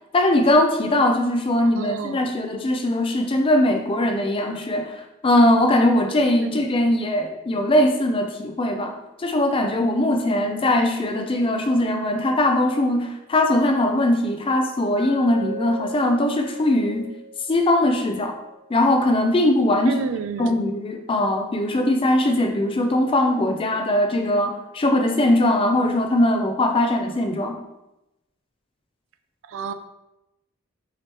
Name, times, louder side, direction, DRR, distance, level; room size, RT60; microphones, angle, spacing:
voice 1, 0.1-5.0 5.2-8.9 9.2-17.1 17.5-18.4 18.7-20.0 20.4-27.6, left 1 dB, 25° left, 4 dB, 0.4 m, -20 dB
voice 2, 1.8-2.4 6.4-6.7 19.9-20.6 29.5-29.7, right 5 dB, 70° right, 9 dB, 0.3 m, -30 dB
Glass, 15.0-19.1, equal, 90° right, 0.8 m, -38 dB
4.8 x 3.0 x 2.9 m, 0.93 s
head